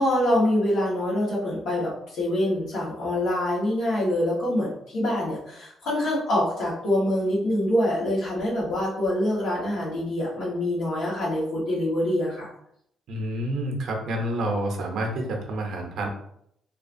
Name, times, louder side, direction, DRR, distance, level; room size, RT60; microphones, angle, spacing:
voice 1, 0.0-12.5, left 1 dB, 90° left, -9 dB, 1.1 m, -25 dB
voice 2, 13.1-16.1, right 1 dB, 70° right, 2 dB, 0.6 m, -28 dB
2.8 x 2.3 x 2.5 m, 0.72 s
cardioid pair, 90°, 0 cm